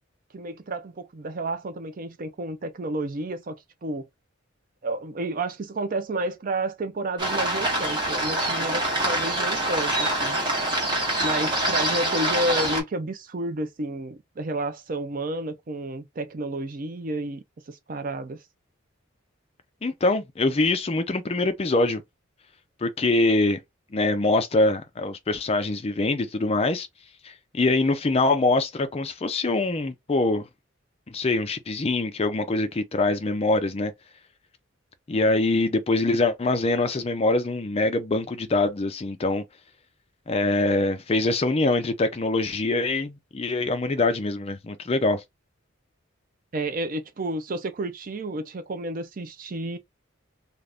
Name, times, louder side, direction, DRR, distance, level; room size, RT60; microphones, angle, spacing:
voice 1, 0.3-3.6 3.8-4.1 4.8-10.4 11.2-18.4 46.5-49.8, right 2 dB, 45° right, 0.5 m, -31 dB
sound 1, 7.2-12.8, right 1 dB, 20° right, 1.3 m, -25 dB
voice 2, 19.8-22.0 22.8-23.6 23.9-26.9 27.2-30.5 31.1-33.9 35.1-39.4 40.3-45.2, left 2 dB, 30° left, 0.4 m, -24 dB
2.5 x 2.4 x 3.4 m
head